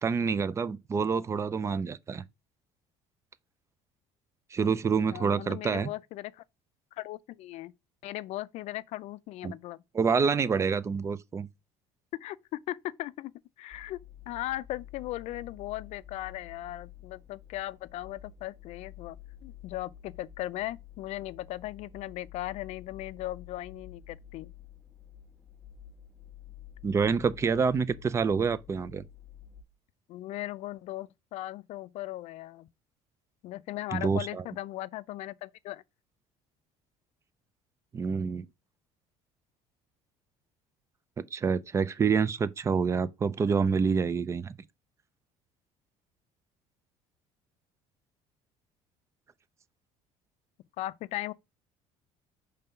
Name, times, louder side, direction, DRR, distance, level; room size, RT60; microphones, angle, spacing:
voice 1, 0.0-2.2 4.5-5.9 9.4-9.5 9.9-11.5 26.8-29.0 33.9-34.4 37.9-38.4 41.3-44.6, right 5 dB, 20° right, 0.4 m, -27 dB
voice 2, 5.1-6.4 6.9-7.7 8.0-9.8 12.1-13.3 13.6-14.0 14.3-19.2 19.4-24.5 30.1-32.7 33.4-35.8 50.8-51.3, left 15 dB, 60° left, 0.4 m, -38 dB
sound 1, 13.7-29.6, left 10 dB, ahead, 1.2 m, -50 dB
5.3 x 3.3 x 5.6 m
cardioid pair, 140°, 13 cm